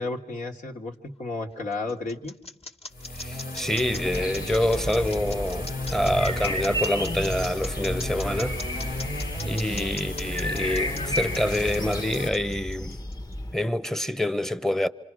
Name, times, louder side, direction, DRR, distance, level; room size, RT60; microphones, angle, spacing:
voice 1, 0.0-2.4, left 3 dB, 70° left, 1.8 m, -32 dB
sound 1, 1.5-13.3, left 2 dB, 45° left, 1.5 m, -40 dB
sound 2, 2.9-12.3, left 1 dB, 90° left, 2.3 m, -34 dB
voice 2, 3.2-8.6 9.4-13.0 13.5-14.9, left 1 dB, 5° left, 0.9 m, -26 dB
sound 3, 4.1-13.5, left 1 dB, 25° left, 1.2 m, -33 dB
27.0 x 26.0 x 6.3 m
cardioid pair, 55°, 14 cm